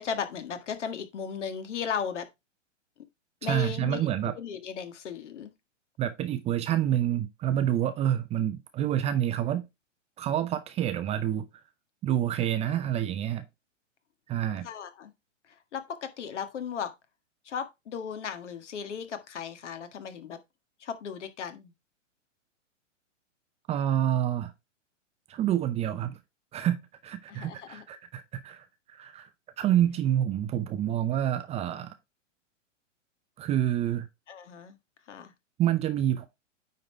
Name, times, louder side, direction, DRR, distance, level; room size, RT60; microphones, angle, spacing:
voice 1, 0.0-2.3 3.4-5.5 14.6-15.1 15.5-16.9 17.5-20.4 20.8-21.7 27.3-27.8 34.3-34.8 35.1-35.3, left 7 dB, 65° left, 1.7 m, -36 dB
voice 2, 3.4-4.3 6.0-9.6 10.2-11.4 12.0-13.4 14.3-14.7 23.7-24.5 25.3-26.2 26.5-26.8 27.0-29.3 29.6-31.9 33.4-34.1 35.6-36.3, right 11 dB, 15° right, 0.5 m, -28 dB
9.5 x 3.8 x 4.4 m
hypercardioid pair, 120°, 38 cm